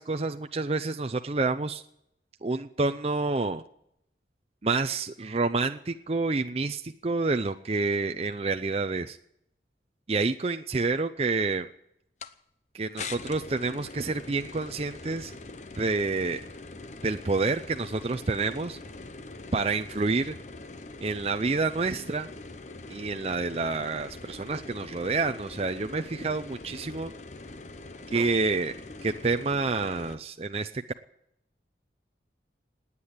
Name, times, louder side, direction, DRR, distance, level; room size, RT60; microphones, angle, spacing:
voice 1, 0.0-1.8 2.4-3.6 4.6-9.2 10.1-11.7 12.7-15.3 15.8-16.4 17.0-18.8 19.5-20.4 21.0-22.3 22.9-27.1 28.1-28.7 29.0-30.7, right 3 dB, 35° right, 8 dB, 0.5 m, -28 dB
sound 1, 12.2-12.3 13.0-30.2, left 3 dB, 40° left, 0.8 m, -43 dB
19.5 x 8.5 x 8.8 m, 0.75 s
head